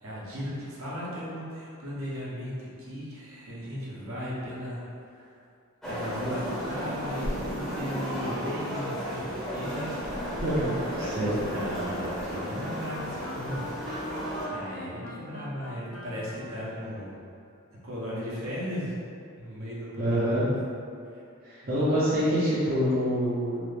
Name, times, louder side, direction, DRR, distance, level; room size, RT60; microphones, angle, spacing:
voice 1, 0.0-5.3 5.9-10.0 11.0-13.6 14.5-17.1 17.8-19.0 19.4-20.4 21.6-21.7, equal, 70° right, -7 dB, 0.8 m, -36 dB
sound 1, 5.8-14.5, equal, ahead, 0.6 m, -34 dB
voice 2, 10.4-11.4 20.0-20.5 21.4-23.6, equal, 40° right, -10 dB, 0.5 m, -26 dB
Wind instrument woodwind instrument, 11.4-17.1, left 1 dB, 65° left, 0.4 m, -43 dB
3.0 x 2.4 x 3.2 m, 2.4 s
head